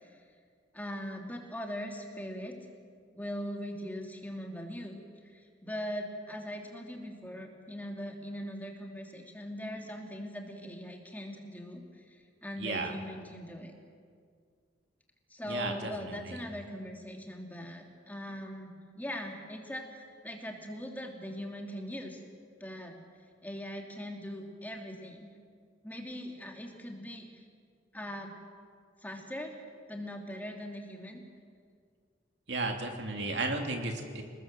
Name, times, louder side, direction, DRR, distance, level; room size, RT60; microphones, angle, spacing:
voice 1, 0.7-2.6 3.1-13.7 15.3-22.2 22.6-23.0 23.4-25.3 25.8-27.5 27.9-28.3 29.0-29.6 29.9-31.2, equal, 10° left, 1 dB, 2.9 m, -41 dB
voice 2, 12.6-12.9 15.5-16.4 32.5-34.2, right 2 dB, 70° right, 3 dB, 3.0 m, -34 dB
29.5 x 19.5 x 7.7 m, 2.1 s
head